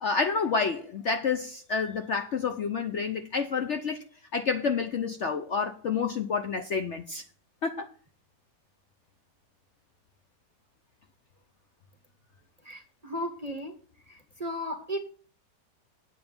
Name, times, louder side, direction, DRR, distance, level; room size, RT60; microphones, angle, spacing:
voice 1, 0.0-4.0 4.3-7.2 7.6-7.9, left 5 dB, 55° left, 0.8 m, -29 dB
voice 2, 12.6-13.8 14.1-15.0, equal, 30° right, 0.9 m, -35 dB
9.0 x 8.0 x 5.3 m
omnidirectional pair, 1.8 m